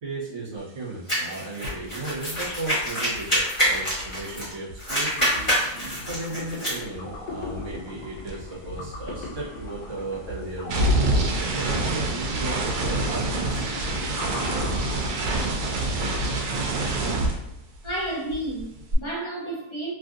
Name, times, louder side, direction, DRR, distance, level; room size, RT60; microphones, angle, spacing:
voice 1, 0.0-5.5 6.0-13.7, right 2 dB, 55° right, -8 dB, 1.4 m, -35 dB
sound 1, 1.1-4.5 4.8-6.8, equal, 20° left, 1.1 m, -26 dB
sound 2, 1.6-1.9 2.1-6.5 6.8-18.0 18.3-18.9, right 2 dB, 85° right, 1.1 m, -28 dB
sound 3, 4.9-15.7, left 3 dB, 80° left, 1.1 m, -40 dB
voice 2, 17.8-19.9, right 1 dB, 45° left, -5 dB, 0.3 m, -31 dB
3.0 x 2.6 x 2.4 m, 0.77 s
omnidirectional pair, 1.7 m